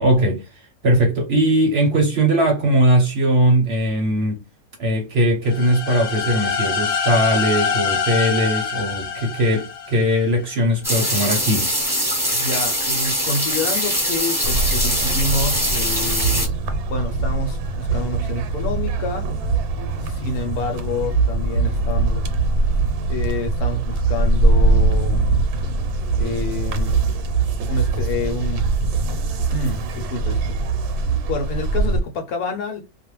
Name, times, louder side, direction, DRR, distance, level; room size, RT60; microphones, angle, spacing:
voice 1, 0.0-4.4 4.8-11.7, right 1 dB, 55° right, 0.8 m, -19 dB
sound 1, 5.5-10.3, left 6 dB, 60° left, 0.7 m, -24 dB
sound 2, 10.8-16.5, equal, ahead, 0.9 m, -22 dB
voice 2, 12.3-16.6 16.9-19.3 20.0-22.2 23.1-25.3 26.2-26.9 27.7-28.6 29.5-30.4 31.3-32.8, left 3 dB, 75° left, 1.1 m, -28 dB
sound 3, 14.4-32.0, right 3 dB, 80° right, 1.1 m, -22 dB
2.4 x 2.3 x 3.0 m
omnidirectional pair, 1.6 m